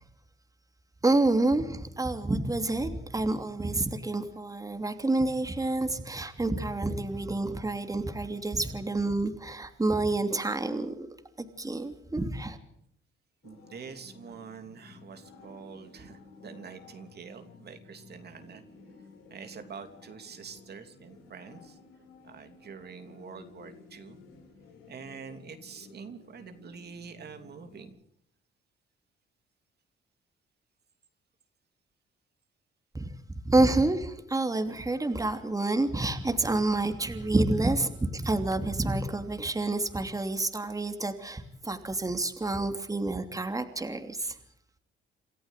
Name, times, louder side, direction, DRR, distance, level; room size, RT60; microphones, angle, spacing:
voice 1, 1.0-10.9 11.4-12.6 32.9-44.4, right 2 dB, 15° right, 7 dB, 2.9 m, -28 dB
sound 1, 13.4-27.9, left 4 dB, 90° left, 6.5 m, -54 dB
voice 2, 13.4-18.6 19.3-21.8 22.2-24.2 24.9-28.0, right 6 dB, 55° right, 7 dB, 3.1 m, -46 dB
28.0 x 14.0 x 8.3 m, 0.71 s
cardioid pair, 90°, 20 cm